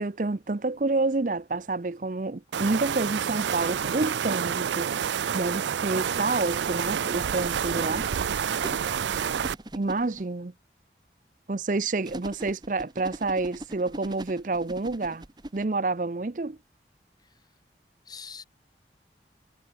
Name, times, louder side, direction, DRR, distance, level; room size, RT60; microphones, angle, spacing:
voice 1, 0.0-4.9 5.3-8.0 9.7-10.5 11.5-15.2 15.5-16.6, right 3 dB, 45° right, 0.6 m, -28 dB
sound 1, 2.5-9.5, right 8 dB, 90° right, 0.4 m, -28 dB
voice 2, 7.7-8.1 17.2-17.6 18.0-18.4, left 3 dB, 25° left, 6.4 m, -44 dB
sound 2, 8.6-10.2 12.0-15.6, right 1 dB, 25° right, 1.0 m, -40 dB
head